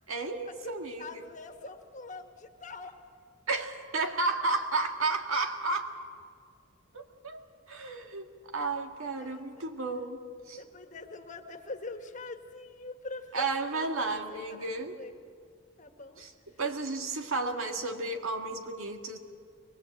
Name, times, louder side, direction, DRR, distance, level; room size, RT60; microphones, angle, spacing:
voice 1, 0.1-1.3 3.5-5.9 6.9-8.3 8.5-10.6 13.3-15.0 16.2-16.3 16.6-19.2, right 3 dB, 90° right, 4 dB, 1.8 m, -32 dB
voice 2, 1.0-2.9 9.0-9.4 10.6-13.5 13.7-15.1 15.8-16.2, left 3 dB, 35° left, 5 dB, 1.6 m, -44 dB
23.5 x 19.5 x 8.0 m, 2.1 s
head